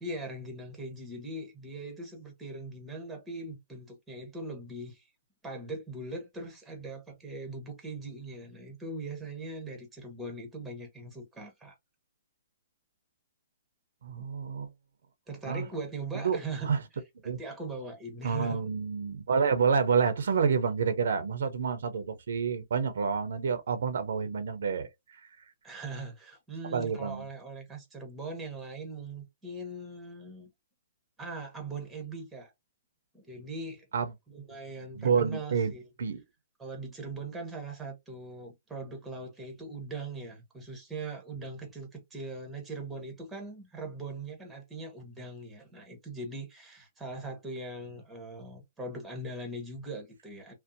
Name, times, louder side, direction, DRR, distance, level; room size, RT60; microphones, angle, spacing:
voice 1, 0.0-5.1 5.4-11.7 14.2-14.3 15.3-16.8 17.2-18.6 25.6-30.5 31.2-32.5 33.1-33.9 34.3-35.9 36.6-50.5, right 2 dB, 10° right, 0.9 m, -40 dB
voice 2, 14.0-14.7 15.5-15.7 16.2-16.4 16.6-16.8 17.2-17.4 18.2-24.9 26.7-27.2 33.9-34.1 34.9-35.7 36.0-36.2, right 6 dB, 80° right, 0.5 m, -28 dB
2.6 x 2.0 x 2.5 m
hypercardioid pair, 150°, 0 cm